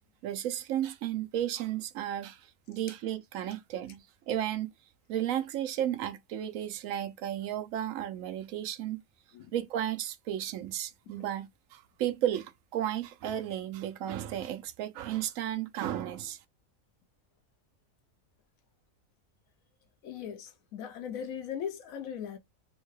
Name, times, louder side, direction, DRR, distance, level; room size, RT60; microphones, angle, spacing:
voice 1, 0.2-4.7 5.1-9.0 9.5-16.4, right 11 dB, 80° right, 1.0 m, -34 dB
voice 2, 20.0-22.4, left 8 dB, 90° left, 1.1 m, -39 dB
3.5 x 2.2 x 3.1 m
omnidirectional pair, 1.4 m